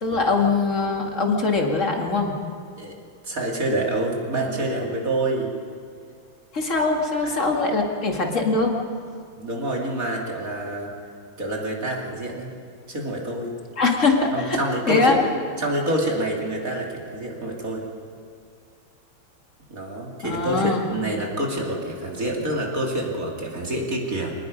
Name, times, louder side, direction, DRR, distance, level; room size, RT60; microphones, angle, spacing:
voice 1, 0.0-2.4 6.5-8.7 13.8-14.6 14.9-15.2 20.2-20.8, left 3 dB, 40° left, 1 dB, 2.4 m, -22 dB
voice 2, 3.2-5.5 7.2-7.4 9.3-10.9 11.4-12.5 12.9-13.5 14.3-15.3 15.6-17.9 19.7-24.3, right 1 dB, 40° right, -1 dB, 3.1 m, -27 dB
25.5 x 19.0 x 5.3 m, 2.3 s
omnidirectional pair, 2.2 m